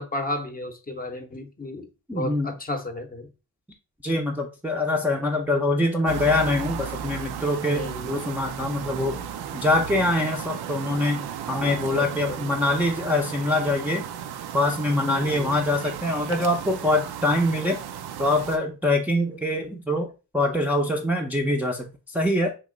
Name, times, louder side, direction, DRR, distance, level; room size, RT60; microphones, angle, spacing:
voice 1, 0.0-3.3 7.6-8.3 11.6-12.5 15.0-15.6, left 1 dB, 25° left, 6 dB, 0.7 m, -33 dB
voice 2, 2.1-2.5 4.0-9.2 9.5-14.0 14.5-17.8 18.2-20.1 20.3-22.5, left 1 dB, 5° right, -1 dB, 0.5 m, -24 dB
sound 1, 6.0-18.6, right 8 dB, 85° right, 0.5 m, -35 dB
3.1 x 2.8 x 3.7 m, 0.31 s
cardioid pair, 85°, 37 cm